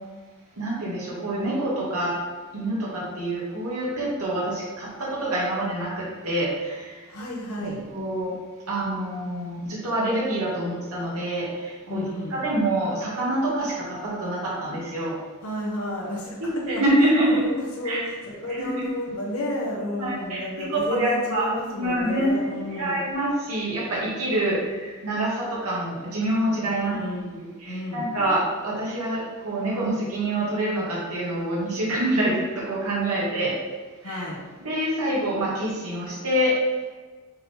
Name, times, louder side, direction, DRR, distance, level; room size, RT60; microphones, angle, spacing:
voice 1, 0.6-2.1 2.5-7.0 7.6-8.3 8.7-12.0 12.3-15.2 16.4-17.5 17.8-18.0 18.5-18.9 20.0-21.5 21.8-27.0 27.6-33.6 34.0-34.2 34.6-36.6, right 1 dB, 90° right, -6 dB, 1.8 m, -26 dB
voice 2, 7.1-7.8 11.9-12.4 15.4-16.8 17.2-23.1 24.4-24.6 26.6-28.1 34.0-34.4, left 1 dB, 75° left, -4 dB, 1.5 m, -32 dB
6.4 x 3.8 x 4.4 m, 1.4 s
head